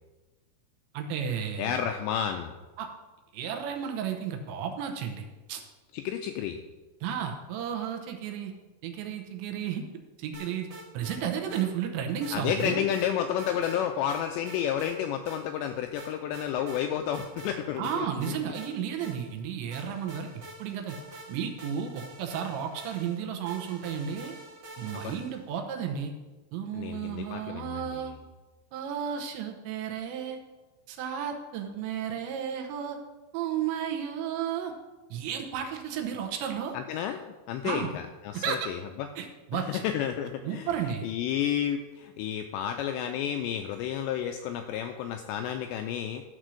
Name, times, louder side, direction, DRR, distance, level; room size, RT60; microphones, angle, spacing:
voice 1, 0.9-1.9 2.8-2.9 3.3-5.6 7.0-8.5 8.8-9.8 10.2-10.7 10.9-12.8 17.8-20.3 20.6-21.0 21.3-24.4 24.8-26.1 26.5-28.1 28.7-30.4 30.9-33.0 33.3-34.7 35.1-36.7 37.6-37.9 38.3-38.7 39.2-39.8 40.4-41.1, right 8 dB, 75° right, 3 dB, 2.9 m, -33 dB
voice 2, 1.6-2.5 5.9-6.6 12.3-18.1 24.9-25.2 26.7-28.0 36.7-37.2 37.5-39.1 39.5-40.7 41.0-46.2, left 9 dB, 85° left, 6 dB, 2.5 m, -31 dB
sound 1, 10.3-11.2 11.5-11.6 12.2-13.1 13.4-13.8 14.1-14.9 15.3-15.4 16.0-16.8 17.1-17.5 17.8-19.4 19.7-25.5, right 1 dB, 45° right, 2.3 m, -46 dB
13.0 x 4.4 x 6.2 m, 1.2 s
omnidirectional pair, 5.5 m